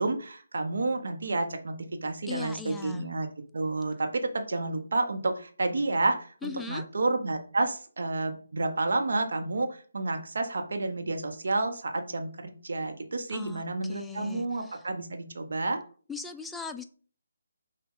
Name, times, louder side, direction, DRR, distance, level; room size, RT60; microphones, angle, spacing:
voice 1, 0.0-3.3 3.5-15.8, right 2 dB, 60° right, 4 dB, 0.9 m, -30 dB
voice 2, 2.3-3.1 6.4-6.9 13.3-14.8 16.1-16.8, left 5 dB, 5° left, 6 dB, 0.3 m, -39 dB
6.0 x 2.3 x 3.7 m, 0.42 s
figure-of-eight pair, 150°, 0 cm